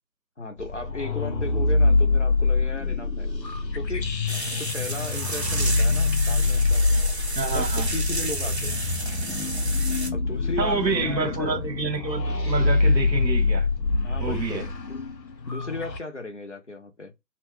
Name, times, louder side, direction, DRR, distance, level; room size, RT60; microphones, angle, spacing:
voice 1, 0.4-3.3 3.7-4.1 4.5-6.8 7.5-8.8 10.1-11.6 14.0-15.0 15.5-17.1, left 2 dB, 45° left, 0.5 m, -36 dB
sound 1, 0.6-16.0, left 3 dB, 85° left, 0.8 m, -25 dB
sound 2, 4.3-10.1, right 2 dB, 40° right, 0.6 m, -32 dB
voice 2, 7.3-7.9 10.6-13.7 14.2-14.7, right 3 dB, 85° right, 1.2 m, -28 dB
2.7 x 2.2 x 3.0 m
figure-of-eight pair, 160°, 50 cm